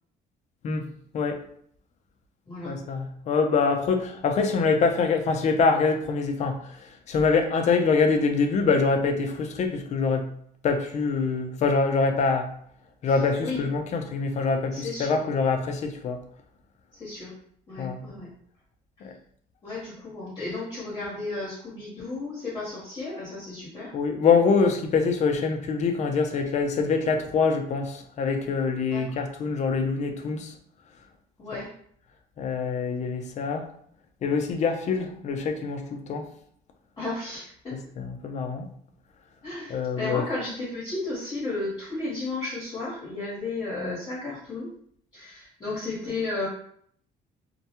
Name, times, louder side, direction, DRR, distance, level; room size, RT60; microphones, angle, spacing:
voice 1, 2.6-10.3 10.6-12.5 13.0-16.2 17.8-18.0 19.0-19.1 23.9-30.5 32.4-33.7 34.2-36.3 37.7-38.7 39.7-40.2, left 4 dB, 45° left, 5 dB, 0.4 m, -25 dB
voice 2, 13.1-13.6 14.7-15.2 17.0-17.3 17.7-18.3 19.6-23.9 28.9-29.2 31.4-31.7 37.0-37.8 39.4-44.7 45.1-46.5, left 2 dB, 25° left, -8 dB, 1.0 m, -33 dB
2.2 x 2.1 x 2.8 m, 0.64 s
cardioid pair, 110°, 17 cm